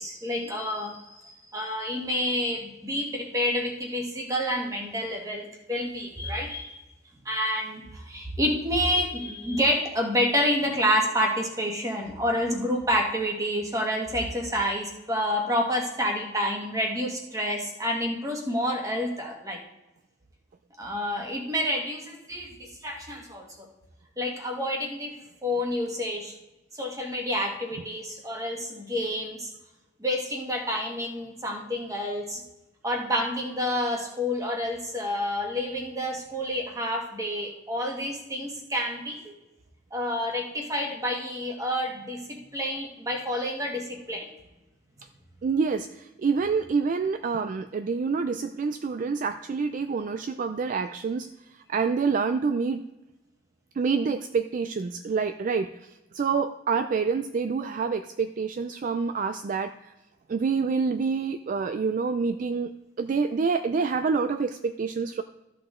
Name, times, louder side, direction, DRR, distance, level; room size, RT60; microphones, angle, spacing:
voice 1, 0.0-6.8 7.2-19.6 20.8-23.5 24.2-25.2 25.4-26.3 26.7-29.5 30.0-32.4 32.8-39.3 39.9-44.3, equal, 20° right, 0 dB, 1.6 m, -29 dB
voice 2, 45.4-51.3 51.5-52.8 53.8-59.9 60.3-62.7 63.0-65.2, right 5 dB, 45° right, 9 dB, 0.3 m, -27 dB
13.5 x 6.1 x 3.7 m, 1.0 s
head